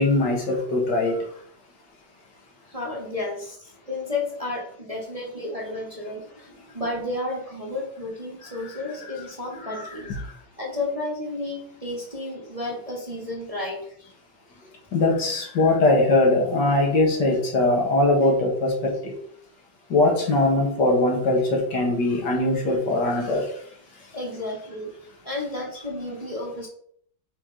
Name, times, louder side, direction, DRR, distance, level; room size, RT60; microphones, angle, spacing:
voice 1, 0.0-1.4 8.4-9.3 9.5-10.4 14.9-19.2 19.9-23.7 24.0-24.1 24.4-24.5, left 2 dB, 60° left, 1 dB, 2.2 m, -22 dB
voice 2, 2.7-10.2 10.6-13.9 24.1-24.9 25.2-26.7, left 2 dB, 20° right, -2 dB, 1.4 m, -32 dB
8.3 x 4.9 x 3.9 m, 0.63 s
omnidirectional pair, 2.2 m